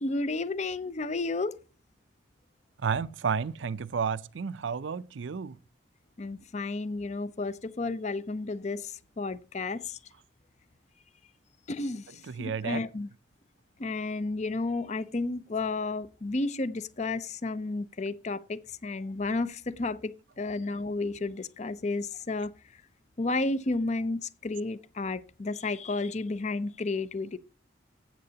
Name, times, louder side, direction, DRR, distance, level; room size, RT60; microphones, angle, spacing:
voice 1, 0.0-1.5 6.2-10.0 11.7-12.0 12.4-13.1 13.8-22.5 23.2-27.4, left 3 dB, 35° left, 0.5 m, -32 dB
voice 2, 2.8-5.6 12.3-12.8, right 6 dB, 80° right, 0.5 m, -31 dB
13.0 x 8.6 x 2.8 m
head